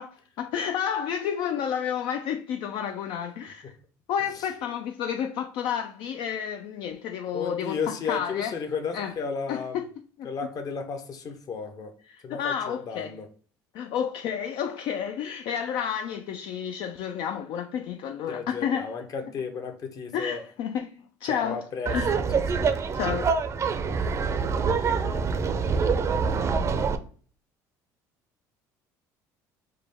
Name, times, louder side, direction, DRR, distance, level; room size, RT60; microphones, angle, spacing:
voice 1, 0.0-3.7 4.1-8.5 8.9-9.1 9.5-9.8 10.2-10.3 12.1-13.2 13.7-18.9 20.1-21.6 21.9-22.1 22.9-23.3, left 8 dB, 65° left, 0.4 m, -31 dB
voice 2, 7.3-9.8 10.2-11.9 12.2-13.3 18.3-20.4 21.2-22.7, left 5 dB, 50° left, 0.8 m, -34 dB
Laughter, 21.9-27.0, right 5 dB, 35° right, 0.5 m, -25 dB
4.9 x 2.2 x 3.3 m
supercardioid pair, 85°, 8 cm